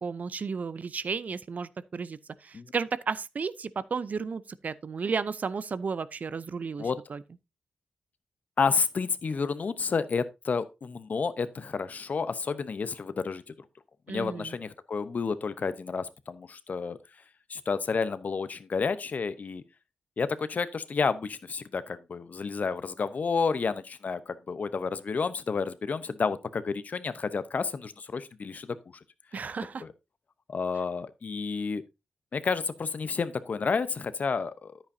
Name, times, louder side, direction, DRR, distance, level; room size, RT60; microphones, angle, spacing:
voice 1, 0.0-7.2 14.1-14.5 29.3-29.8, right 5 dB, 55° right, 0.6 m, -33 dB
voice 2, 8.6-13.5 14.1-17.0 17.5-19.6 20.2-28.8 29.8-29.9 30.5-31.8 32.3-34.8, left 5 dB, 55° left, 0.8 m, -30 dB
9.8 x 8.8 x 2.7 m
supercardioid pair, 45°, 3 cm